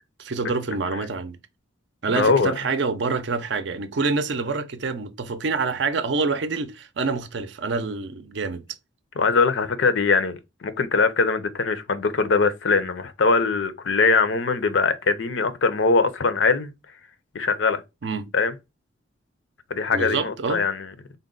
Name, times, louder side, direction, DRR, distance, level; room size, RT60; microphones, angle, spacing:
voice 1, 0.2-1.4 2.0-8.6 18.0-18.3 19.9-20.6, right 4 dB, 60° right, 0.5 m, -26 dB
voice 2, 2.2-2.5 9.2-16.7 17.3-17.8 18.3-18.5 19.7-20.9, left 4 dB, 70° left, 0.6 m, -22 dB
3.8 x 2.2 x 3.7 m
head